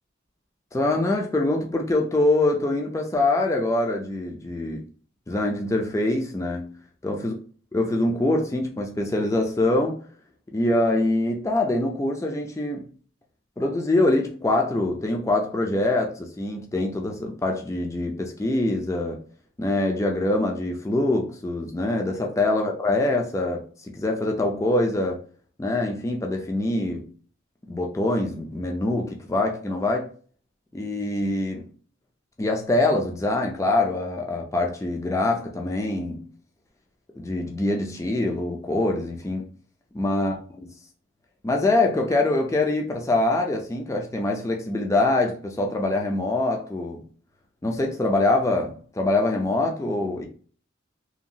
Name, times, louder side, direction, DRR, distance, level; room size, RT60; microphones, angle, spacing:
voice 1, 0.7-4.8 5.3-6.7 7.0-7.3 7.7-10.0 10.5-12.9 13.6-19.2 19.6-23.6 23.9-25.2 25.6-27.1 27.7-30.1 30.7-31.7 32.4-36.2 37.2-39.5 39.9-40.3 41.4-47.0 47.6-50.3, left 2 dB, 15° left, 0.3 m, -24 dB
2.8 x 2.3 x 2.6 m
head